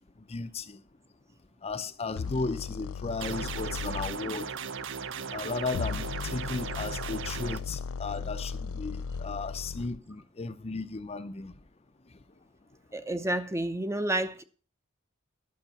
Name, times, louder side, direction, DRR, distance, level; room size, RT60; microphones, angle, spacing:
voice 1, 0.3-0.8 1.6-4.5 5.3-11.5, left 3 dB, 30° left, 0.6 m, -35 dB
sound 1, 2.2-4.2 5.6-10.0, left 5 dB, 80° left, 0.5 m, -37 dB
sound 2, 3.2-7.6, right 6 dB, 60° right, 0.6 m, -37 dB
voice 2, 12.9-14.4, right 1 dB, 15° right, 0.7 m, -30 dB
11.5 x 7.2 x 5.7 m
head